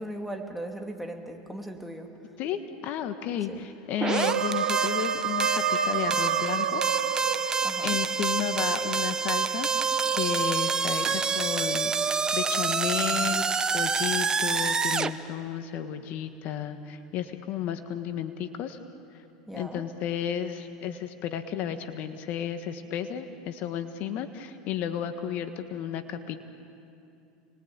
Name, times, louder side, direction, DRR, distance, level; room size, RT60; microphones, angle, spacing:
voice 1, 0.0-2.2 3.5-3.7 7.6-8.0 19.5-19.9, right 1 dB, ahead, 2 dB, 2.7 m, -38 dB
voice 2, 2.4-6.8 7.8-13.5 13.7-18.8 19.1-19.2 19.5-26.4, left 9 dB, 55° left, 8 dB, 1.5 m, -33 dB
sound 1, 4.0-15.1, right 5 dB, 20° right, 0.9 m, -27 dB
sound 2, 4.0-8.1, right 8 dB, 90° right, 1.3 m, -29 dB
Piano, 11.0-12.7, right 11 dB, 45° right, 2.7 m, -39 dB
29.5 x 21.5 x 8.9 m, 2.6 s
supercardioid pair, 105°, 3 cm